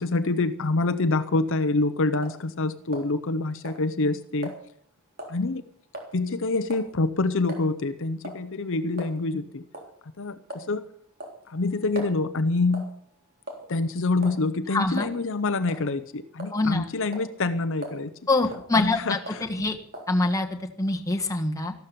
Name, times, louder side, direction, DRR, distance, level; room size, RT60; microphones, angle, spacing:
voice 1, 0.0-4.5 5.3-5.6 6.1-9.7 10.2-10.9 11.5-12.9 13.7-18.1 18.8-19.5, left 3 dB, 60° left, 11 dB, 0.7 m, -26 dB
sound 1, 2.2-2.4 2.9-3.4 3.6-3.8 4.4-4.6 5.2-5.4 5.9-6.1 6.7-6.9 7.5-7.6 8.2-8.4 9.0-9.1 9.7-9.9 10.5-10.7 11.2-12.2 12.7-13.0 13.5-13.8 14.2-14.4 15.0-15.1 15.6-15.9 16.4-16.8 17.1-17.3 17.8-18.0 18.4-18.7 19.3-19.5 19.9-20.1, right 1 dB, 45° right, 3.4 m, -39 dB
voice 2, 14.7-15.1 16.5-16.9 18.3-19.8 20.1-20.5 20.8-21.7, left 2 dB, 15° left, 3 dB, 1.5 m, -25 dB
14.0 x 12.5 x 6.9 m, 0.63 s
head